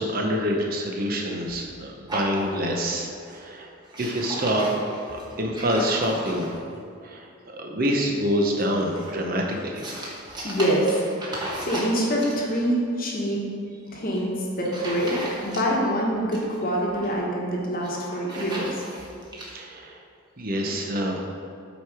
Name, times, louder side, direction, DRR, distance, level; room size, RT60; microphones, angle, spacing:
voice 1, 0.0-3.7 4.0-6.5 7.0-9.9 19.5-20.0 20.4-21.2, equal, 45° right, 1 dB, 0.8 m, -26 dB
sound 1, 2.1-3.0 3.3-3.5 3.8-6.7 8.6-12.6 14.0-14.2 14.6-15.9 16.1-17.1 17.7-19.5, right 1 dB, 20° right, 1.1 m, -36 dB
voice 2, 10.4-10.9 11.6-13.4 13.9-18.7, equal, 40° left, -2 dB, 1.2 m, -25 dB
8.1 x 4.6 x 4.8 m, 2.4 s
head